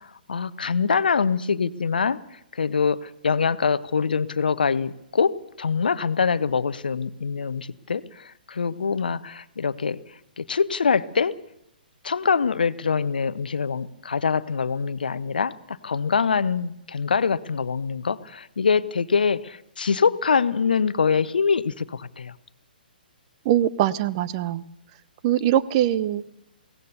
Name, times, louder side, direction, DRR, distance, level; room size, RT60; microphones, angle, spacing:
voice 1, 0.3-5.3 5.6-10.0 10.4-11.3 12.0-22.3, left 5 dB, 65° left, 16 dB, 0.8 m, -24 dB
voice 2, 23.4-24.6 25.2-26.2, right 12 dB, 30° right, 16 dB, 0.7 m, -22 dB
22.0 x 17.5 x 6.9 m, 0.80 s
figure-of-eight pair, 125°, 5 cm